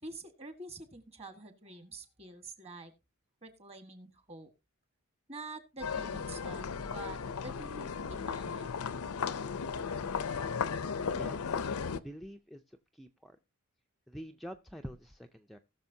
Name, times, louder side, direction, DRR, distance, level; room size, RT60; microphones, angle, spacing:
voice 1, 0.0-2.9 3.4-4.5 5.3-8.7, right 2 dB, 30° right, 8 dB, 1.5 m, -47 dB
sound 1, 5.8-12.0, left 6 dB, 70° left, 0.6 m, -35 dB
voice 2, 11.1-11.6 12.0-13.4 14.1-15.6, equal, ahead, 4 dB, 0.4 m, -46 dB
19.0 x 6.4 x 2.7 m, 0.26 s
head